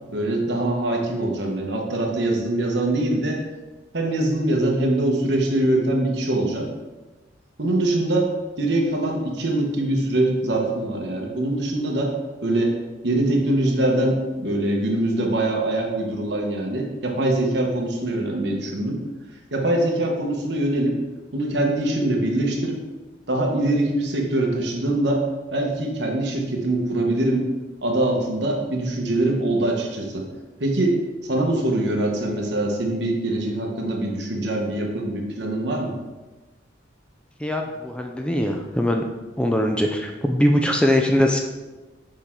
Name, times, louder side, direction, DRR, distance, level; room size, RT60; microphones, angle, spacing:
voice 1, 0.1-3.4 3.9-6.7 7.6-8.3 8.6-12.1 12.4-12.7 13.0-19.0 19.5-21.0 21.3-22.8 23.3-25.2 25.5-27.5 27.8-30.3 30.6-35.9, right 1 dB, 65° right, 1 dB, 1.1 m, -23 dB
voice 2, 37.4-39.0 39.4-41.4, left 1 dB, 5° left, 2 dB, 0.4 m, -21 dB
6.7 x 4.5 x 3.7 m, 1.2 s
head